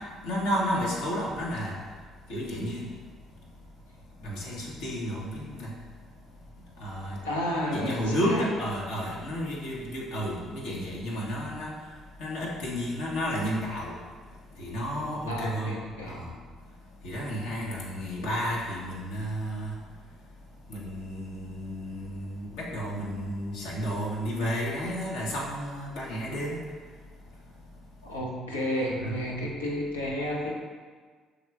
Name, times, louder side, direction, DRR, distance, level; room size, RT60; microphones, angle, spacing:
voice 1, 0.2-1.7 2.3-2.9 4.2-5.7 6.8-7.2 7.5-11.7 12.2-13.9 14.6-15.7 16.0-16.3 17.0-19.7 20.7-26.6 29.0-29.1, equal, 65° left, -5 dB, 1.0 m, -32 dB
voice 2, 7.2-8.5 15.3-16.2 28.0-30.5, equal, 80° left, -2 dB, 0.6 m, -31 dB
6.2 x 3.4 x 2.4 m, 1.5 s
figure-of-eight pair, 50°, 0 cm